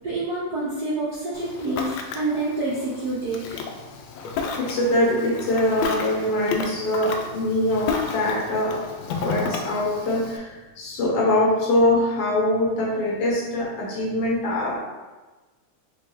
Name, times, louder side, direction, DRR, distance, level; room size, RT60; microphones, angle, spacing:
voice 1, 0.0-3.6, right 2 dB, 65° right, -13 dB, 0.9 m, -27 dB
Ocean, 1.3-10.4, left 4 dB, 85° left, 1.6 m, -32 dB
voice 2, 4.5-8.9 9.2-14.8, left 1 dB, 65° left, -5 dB, 1.5 m, -23 dB
4.5 x 3.5 x 3.0 m, 1.2 s
omnidirectional pair, 3.6 m